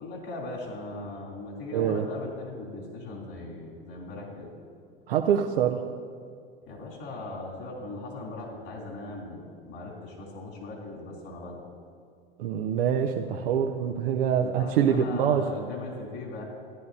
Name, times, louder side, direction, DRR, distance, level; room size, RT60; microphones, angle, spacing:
voice 1, 0.0-4.5 6.6-11.6 14.4-16.4, left 2 dB, 50° left, -3 dB, 3.1 m, -39 dB
voice 2, 1.7-2.1 5.1-5.8 12.4-15.5, right 8 dB, 70° right, 3 dB, 0.6 m, -25 dB
14.5 x 10.5 x 2.7 m, 2.3 s
hypercardioid pair, 90°, 30 cm